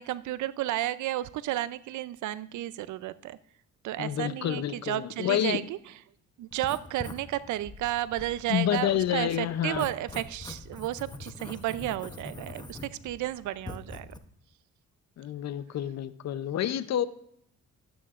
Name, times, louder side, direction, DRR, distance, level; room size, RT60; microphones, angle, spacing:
voice 1, 0.0-3.4 3.8-5.8 6.4-14.1, right 14 dB, 75° right, 16 dB, 0.5 m, -32 dB
voice 2, 4.0-5.6 8.5-9.9 15.2-17.0, left 11 dB, 60° left, 13 dB, 0.7 m, -28 dB
Writing, 6.5-14.2, left 2 dB, 15° left, 0.8 m, -44 dB
12.0 x 9.0 x 2.5 m, 0.72 s
cardioid pair, 90°, 30 cm